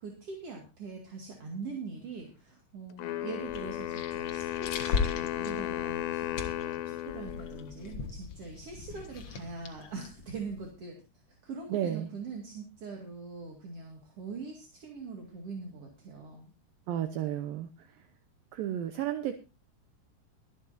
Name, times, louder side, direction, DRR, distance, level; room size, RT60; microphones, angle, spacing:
voice 1, 0.0-11.0 11.4-16.5, right 4 dB, 45° right, 0 dB, 2.6 m, -42 dB
Wind instrument woodwind instrument, 3.0-8.0, left 14 dB, 90° left, 3.2 m, -35 dB
sound 1, 3.4-10.7, left 5 dB, 60° left, 1.5 m, -38 dB
voice 2, 11.7-12.1 16.9-17.7 18.5-19.3, right 11 dB, 75° right, 8 dB, 2.2 m, -32 dB
23.5 x 9.4 x 2.7 m, 0.30 s
omnidirectional pair, 4.8 m